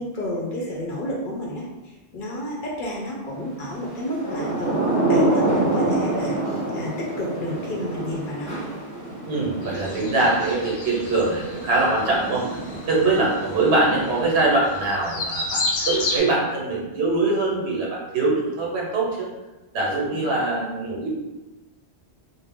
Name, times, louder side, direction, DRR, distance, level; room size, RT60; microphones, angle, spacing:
voice 1, 0.0-4.8 5.1-8.6 20.1-20.3, left 1 dB, 60° left, -3 dB, 0.6 m, -31 dB
Thunder / Rain, 4.0-14.5, right 2 dB, 10° right, 0.9 m, -27 dB
voice 2, 9.3-12.5 12.9-15.6 15.9-19.3 19.7-21.1, right 2 dB, 75° right, -3 dB, 1.0 m, -23 dB
sound 1, 9.6-16.2, left 2 dB, 90° left, 0.9 m, -32 dB
2.3 x 2.0 x 3.4 m, 1.1 s
omnidirectional pair, 1.1 m